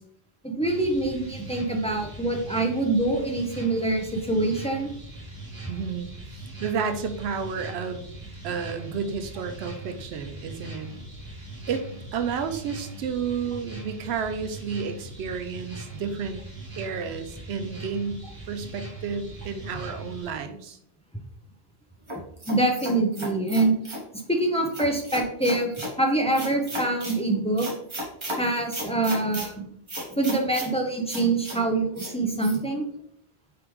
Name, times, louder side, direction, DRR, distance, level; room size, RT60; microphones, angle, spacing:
voice 1, 0.4-4.9 22.5-23.8 24.3-27.7 28.4-29.6 30.1-32.8, right 2 dB, 10° left, 1 dB, 0.4 m, -25 dB
sound 1, 0.6-20.3, right 2 dB, 60° right, 1.3 m, -41 dB
voice 2, 5.7-8.1 8.4-10.9 11.7-16.4 16.8-18.2 18.5-20.8, right 6 dB, 80° right, 8 dB, 0.9 m, -31 dB
sound 2, 22.1-24.0 24.7-25.9 26.3-27.2 27.6-28.4 28.7-29.5 29.9-30.7 31.1-31.6 32.0-32.1 32.4-32.6, equal, 30° right, 1.1 m, -34 dB
4.7 x 3.5 x 3.0 m, 0.68 s
omnidirectional pair, 1.1 m